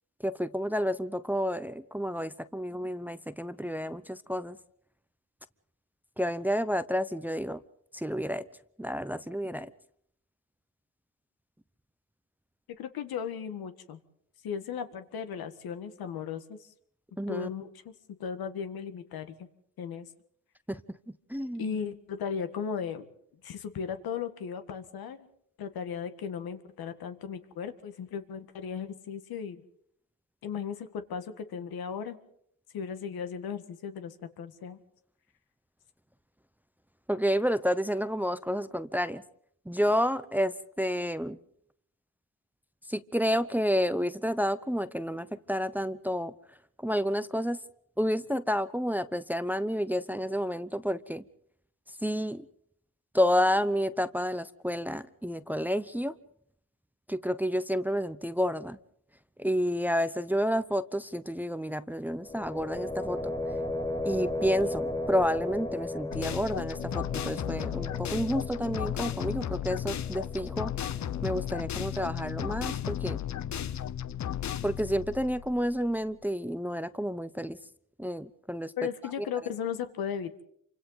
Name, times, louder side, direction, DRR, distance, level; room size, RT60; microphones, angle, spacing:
voice 1, 0.2-4.6 6.2-7.6 7.9-8.5 8.8-9.7 17.2-17.5 20.7-20.8 21.3-21.7 37.1-39.2 39.7-41.4 42.9-46.3 46.8-47.6 48.0-51.2 52.0-52.5 53.1-56.1 57.1-58.8 59.4-63.3 64.0-70.7 71.2-73.2 74.6-77.6 78.0-78.7 79.2-79.3, equal, 5° right, 14 dB, 0.8 m, -30 dB
voice 2, 12.8-14.0 14.4-16.7 17.3-17.7 18.2-19.5 19.8-20.1 21.6-23.1 23.4-25.3 25.6-29.6 30.4-32.2 32.7-34.8 78.8-80.4, left 7 dB, 75° left, 9 dB, 1.8 m, -36 dB
sound 1, 62.2-72.0, left 2 dB, 10° left, 1.3 m, -36 dB
sound 2, 66.1-76.0, left 10 dB, 50° left, 0.8 m, -34 dB
28.0 x 25.0 x 4.0 m, 0.69 s
cardioid pair, 75°, 37 cm